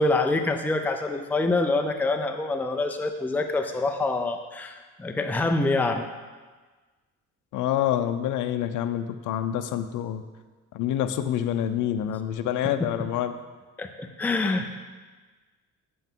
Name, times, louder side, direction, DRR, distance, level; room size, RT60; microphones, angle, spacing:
voice 1, 0.0-6.0 12.8-12.9 13.8-14.7, left 2 dB, 5° left, 6 dB, 0.5 m, -26 dB
voice 2, 7.5-10.2 10.7-13.3, left 11 dB, 80° left, 9 dB, 0.6 m, -27 dB
8.3 x 7.8 x 3.7 m, 1.3 s
cardioid pair, 120°, 30 cm